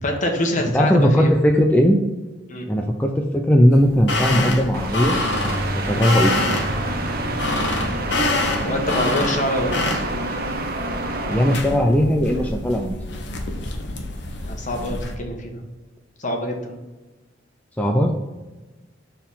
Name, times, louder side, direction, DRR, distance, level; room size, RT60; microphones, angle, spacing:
voice 1, 0.0-1.3 2.5-2.7 8.6-9.9 14.4-15.7 16.2-16.8, left 1 dB, 45° left, 2 dB, 1.1 m, -25 dB
voice 2, 0.7-2.0 2.7-5.2 5.7-6.4 11.3-13.2 17.8-18.1, equal, 10° left, 1 dB, 0.4 m, -18 dB
sound 1, 3.7-15.2, left 2 dB, 65° left, 0.9 m, -27 dB
sound 2, 4.7-11.6, right 2 dB, 55° right, 0.9 m, -27 dB
6.4 x 3.9 x 5.6 m, 1.2 s
head